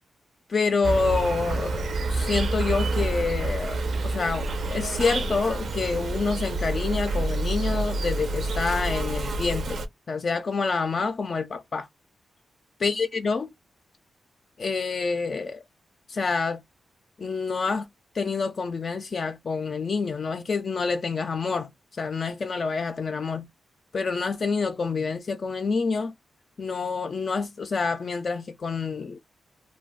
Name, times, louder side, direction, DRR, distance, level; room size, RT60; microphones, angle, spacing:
voice 1, 0.5-9.8 10.1-11.9 12.8-13.5 14.6-15.6 16.1-16.6 17.2-17.9 18.1-21.7 22.0-23.5 23.9-26.1 26.6-29.2, left 4 dB, 45° left, 0.3 m, -27 dB
Insect, 0.8-9.9, right 2 dB, 60° right, 0.5 m, -28 dB
2.4 x 2.2 x 3.5 m
wide cardioid pair, 140°, 0 cm